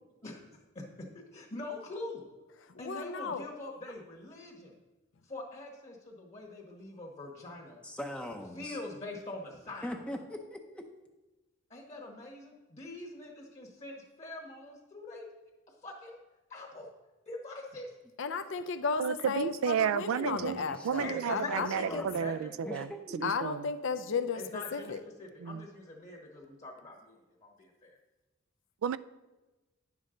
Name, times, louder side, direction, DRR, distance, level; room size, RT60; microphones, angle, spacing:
voice 1, 0.2-2.2 2.8-4.8 5.3-7.8 8.5-10.2 11.7-15.3 15.8-16.2 16.5-16.9 17.3-17.9 21.0-22.9 24.3-28.0, left 2 dB, 35° left, 0 dB, 1.2 m, -44 dB
voice 2, 2.8-3.5 18.2-22.0 23.2-24.4 24.7-25.0, left 5 dB, 65° left, 10 dB, 0.5 m, -34 dB
voice 3, 7.8-8.8 9.8-10.9 20.2-22.3 22.6-23.3, left 1 dB, 5° left, 3 dB, 0.6 m, -42 dB
voice 4, 19.0-22.9 23.2-23.7 25.4-25.7 28.8-29.0, right 7 dB, 85° right, 16 dB, 0.3 m, -32 dB
10.5 x 7.2 x 3.8 m, 1.1 s
head